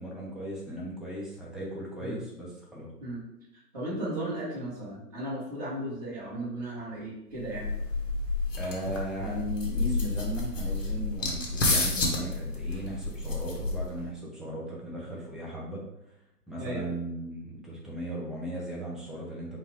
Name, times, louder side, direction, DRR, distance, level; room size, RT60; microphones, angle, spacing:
voice 1, 0.0-2.9 8.6-15.8 16.5-19.6, right 1 dB, ahead, -6 dB, 0.5 m, -37 dB
voice 2, 3.5-7.7 16.6-16.9, right 1 dB, 25° right, -14 dB, 1.4 m, -35 dB
sound 1, 7.4-14.1, left 2 dB, 50° left, 1.1 m, -30 dB
4.6 x 2.3 x 4.8 m, 0.84 s
hypercardioid pair, 180°, 48 cm